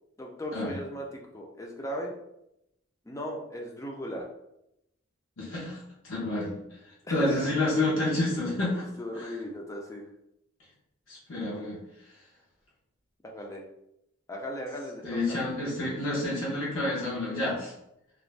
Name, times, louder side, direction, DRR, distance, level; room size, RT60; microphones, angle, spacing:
voice 1, 0.2-2.2 3.0-4.3 7.0-7.9 9.0-10.0 13.2-13.6 14.3-15.4, equal, 15° left, 0 dB, 0.4 m, -37 dB
voice 2, 5.4-5.8 6.0-6.5 7.1-8.8 11.1-11.8 15.0-17.7, left 2 dB, 70° left, -6 dB, 0.7 m, -29 dB
2.4 x 2.0 x 3.2 m, 0.82 s
head